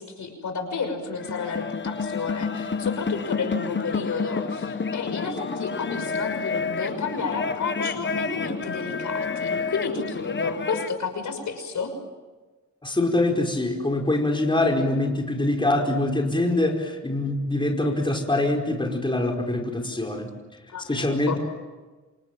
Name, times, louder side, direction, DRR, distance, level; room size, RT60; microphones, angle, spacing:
voice 1, 0.0-11.9 20.7-21.4, left 5 dB, 75° left, 6 dB, 6.1 m, -31 dB
sound 1, 1.1-11.0, left 4 dB, 40° left, 1.2 m, -29 dB
voice 2, 12.8-20.3 20.9-21.4, left 2 dB, 15° left, 1 dB, 5.0 m, -24 dB
28.0 x 27.5 x 7.7 m, 1.3 s
cardioid pair, 85°, 30 cm